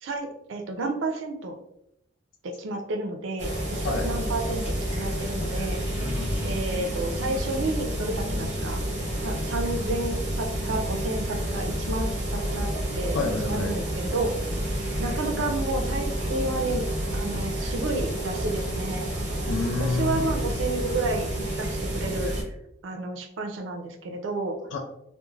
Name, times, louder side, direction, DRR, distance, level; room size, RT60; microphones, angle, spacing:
voice 1, 0.0-1.6 2.4-5.8 6.4-8.8 9.2-12.7 13.0-13.2 13.4-14.3 15.0-16.9 17.1-19.1 19.8-21.3 21.6-22.6 22.8-24.6, right 2 dB, 75° right, 4 dB, 0.4 m, -31 dB
sound 1, 3.4-22.4, right 1 dB, 35° right, 0.7 m, -29 dB
voice 2, 5.9-6.5 13.1-13.7 19.5-20.3 24.7-24.8, left 3 dB, 70° left, 2 dB, 0.4 m, -29 dB
3.1 x 2.1 x 2.3 m, 0.81 s
head